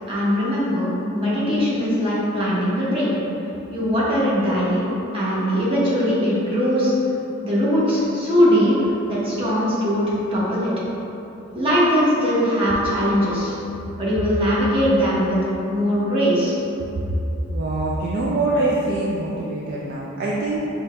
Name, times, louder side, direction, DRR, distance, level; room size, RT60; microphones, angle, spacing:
voice 1, 0.1-3.1 3.7-4.9 5.1-6.9 7.4-10.7 11.5-13.5 14.0-16.6, equal, 25° right, -8 dB, 1.0 m, -20 dB
voice 2, 17.5-20.6, right 2 dB, 45° right, -5 dB, 0.4 m, -24 dB
5.6 x 2.3 x 3.2 m, 3.0 s
head